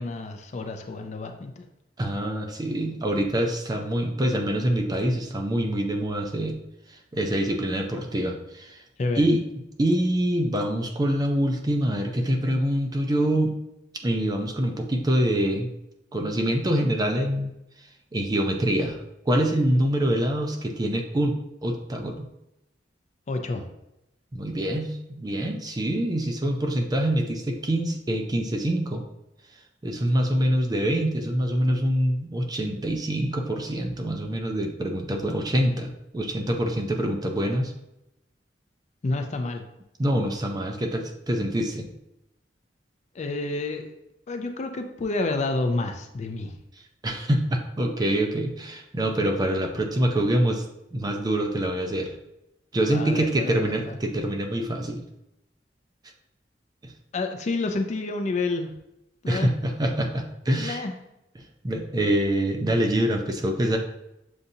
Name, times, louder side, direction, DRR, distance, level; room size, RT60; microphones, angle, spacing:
voice 1, 0.0-1.6 9.0-9.2 23.3-23.7 39.0-39.7 43.1-43.9 44.3-46.6 52.9-54.0 57.1-58.7 59.2-59.5 60.5-60.9, left 3 dB, 40° left, 6 dB, 0.4 m, -29 dB
voice 2, 2.0-6.6 7.1-8.8 9.2-9.4 9.8-13.5 14.0-15.7 16.1-17.5 18.1-19.0 19.3-22.3 24.3-24.9 25.1-29.0 29.8-37.7 40.0-41.9 47.0-50.6 50.9-52.2 52.7-55.0 56.8-56.9 59.3-60.8 61.6-63.8, right 1 dB, 20° right, 3 dB, 0.5 m, -25 dB
6.8 x 2.5 x 2.7 m, 0.88 s
head